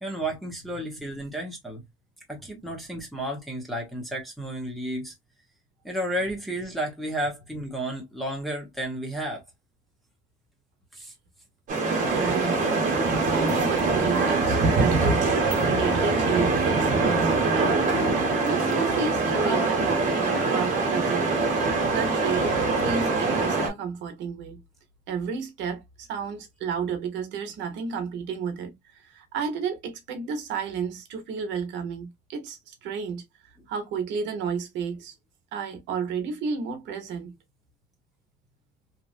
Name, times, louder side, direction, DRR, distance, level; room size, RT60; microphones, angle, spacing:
voice 1, 0.0-1.8 2.3-5.1 5.8-9.4 10.9-11.1, right 1 dB, ahead, 0.8 m, -32 dB
sound 1, 11.7-23.7, right 3 dB, 40° right, 1.2 m, -23 dB
voice 2, 12.0-12.6 13.3-17.8 18.1-21.4 21.9-24.6 25.1-33.2 33.7-35.1 35.5-37.3, right 6 dB, 65° right, 0.9 m, -32 dB
2.9 x 2.4 x 2.4 m
cardioid pair, 165°, 20 cm